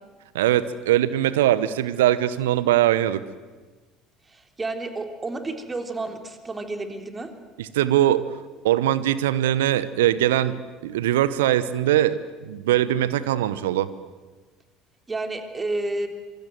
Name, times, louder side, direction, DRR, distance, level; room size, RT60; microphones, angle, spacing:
voice 1, 0.3-3.2 7.6-8.2 8.6-13.9, right 12 dB, 70° right, 16 dB, 1.0 m, -21 dB
voice 2, 4.3-7.3 15.1-16.1, right 2 dB, 20° right, 6 dB, 3.3 m, -30 dB
25.5 x 24.0 x 7.9 m, 1.3 s
figure-of-eight pair, 60°, 0 cm